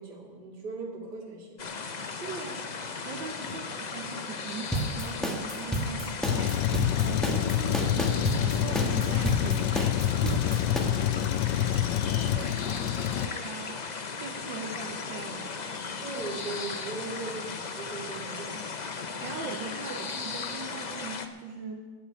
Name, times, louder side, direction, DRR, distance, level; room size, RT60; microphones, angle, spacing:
voice 1, 0.0-1.6 16.0-18.6, right 3 dB, 65° right, 1 dB, 2.9 m, -38 dB
sound 1, 1.6-21.3, left 5 dB, 60° left, 0.4 m, -37 dB
voice 2, 2.2-10.4 10.8-11.9 12.1-15.6 19.0-21.8, right 4 dB, 85° right, 1 dB, 1.8 m, -40 dB
sound 2, 4.7-10.8, right 1 dB, ahead, 1.3 m, -30 dB
Truck, 6.2-13.3, left 12 dB, 85° left, 1.3 m, -27 dB
14.5 x 7.2 x 9.5 m, 1.4 s
omnidirectional pair, 2.0 m